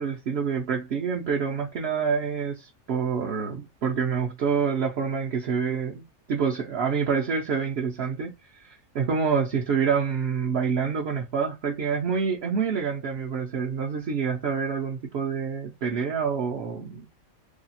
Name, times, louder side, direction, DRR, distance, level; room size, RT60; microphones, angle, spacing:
voice 1, 0.0-8.3 8.6-17.1, right 6 dB, 60° right, 0.8 m, -27 dB
2.8 x 2.3 x 4.0 m
omnidirectional pair, 1.4 m